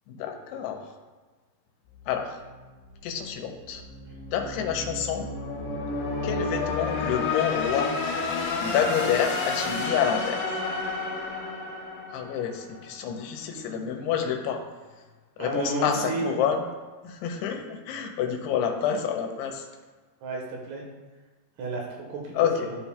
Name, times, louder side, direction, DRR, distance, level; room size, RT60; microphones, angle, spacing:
voice 1, 0.1-0.9 2.1-2.4 3.0-3.8 4.3-5.3 6.2-7.9 8.6-10.6 12.1-14.6 15.4-16.7 17.0-19.7 22.4-22.7, left 8 dB, 85° left, 3 dB, 2.7 m, -28 dB
sound 1, 1.9-12.9, left 3 dB, 65° left, 2.4 m, -31 dB
voice 2, 15.4-16.2 20.2-20.8 21.6-22.8, right 2 dB, 75° right, -1 dB, 3.1 m, -32 dB
13.0 x 4.4 x 2.2 m, 1.3 s
omnidirectional pair, 4.8 m